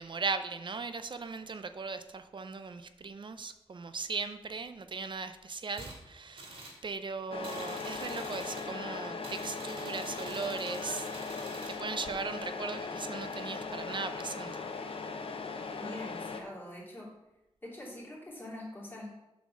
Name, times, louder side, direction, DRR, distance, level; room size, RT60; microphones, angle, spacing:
voice 1, 0.0-6.5 6.8-11.1 11.7-14.5, right 4 dB, 50° right, 0.5 m, -38 dB
sound 1, 5.7-6.0 6.4-6.8 7.4-8.7 9.2-11.8, right 1 dB, 75° right, 2.4 m, -46 dB
Truck, 7.3-16.4, left 4 dB, 65° left, 0.7 m, -39 dB
voice 2, 15.8-17.1 17.6-19.1, left 1 dB, 20° left, 2.7 m, -44 dB
8.3 x 4.1 x 6.2 m
wide cardioid pair, 130°, 10 cm